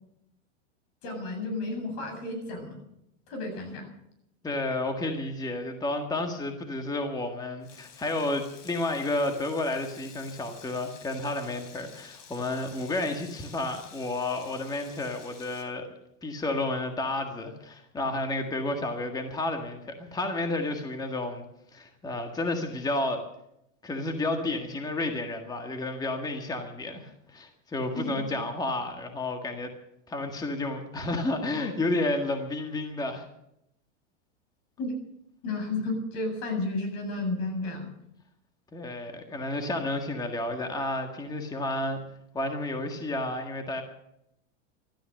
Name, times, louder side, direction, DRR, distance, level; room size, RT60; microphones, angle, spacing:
voice 1, 1.0-2.8 3.3-3.9 27.9-28.1 34.8-34.9 35.4-37.9, left 2 dB, 50° left, 5 dB, 7.9 m, -32 dB
voice 2, 4.4-15.9 16.2-21.5 21.7-23.2 23.8-29.7 30.1-33.2 38.7-42.0 42.3-43.8, left 2 dB, 10° left, 4 dB, 1.7 m, -31 dB
Frying (food), 7.6-15.6, left 6 dB, 80° left, 4.1 m, -51 dB
16.0 x 13.5 x 6.5 m, 0.79 s
supercardioid pair, 140°, 37 cm